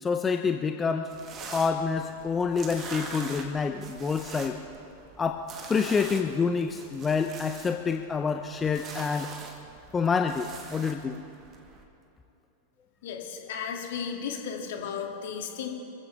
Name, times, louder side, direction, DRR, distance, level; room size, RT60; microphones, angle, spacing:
voice 1, 0.0-1.1 1.5-4.6 5.2-5.4 5.7-9.3 9.9-11.2, left 5 dB, 20° left, 6 dB, 0.6 m, -27 dB
sound 1, 1.1-11.8, right 4 dB, 30° right, 2.0 m, -44 dB
voice 2, 13.0-15.7, left 7 dB, 55° left, 2 dB, 2.2 m, -34 dB
28.0 x 15.5 x 3.3 m, 2.8 s
figure-of-eight pair, 90°, 0 cm